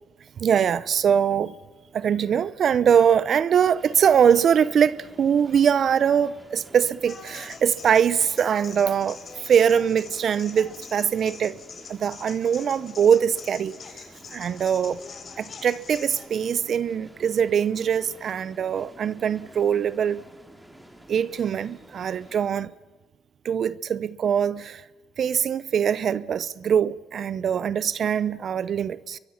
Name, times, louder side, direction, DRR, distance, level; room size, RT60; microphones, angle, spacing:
voice 1, 0.4-1.5 1.9-11.6 11.9-14.0 14.3-15.0 15.4-20.2 21.1-22.7 23.4-24.8 25.2-29.2, right 8 dB, 60° right, 0.7 m, -22 dB
sound 1, 3.7-22.5, right 1 dB, 10° right, 3.1 m, -50 dB
sound 2, 7.1-16.3, left 6 dB, 50° left, 4.0 m, -44 dB
29.5 x 23.5 x 5.8 m
cardioid pair, 90°, 0 cm